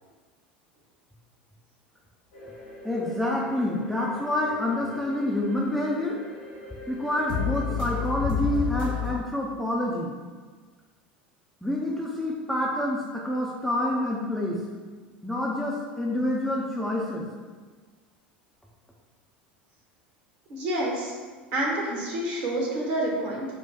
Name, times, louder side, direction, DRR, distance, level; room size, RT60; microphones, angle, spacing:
sound 1, 2.3-9.1, left 6 dB, 60° left, 0.9 m, -33 dB
voice 1, 2.8-6.2 6.9-10.1 11.6-14.6 15.2-17.3, left 1 dB, ahead, -3 dB, 0.5 m, -27 dB
voice 2, 20.5-21.1 21.5-23.5, right 1 dB, 50° right, -3 dB, 1.3 m, -28 dB
4.6 x 2.2 x 4.3 m, 1.5 s
figure-of-eight pair, 75°, 5 cm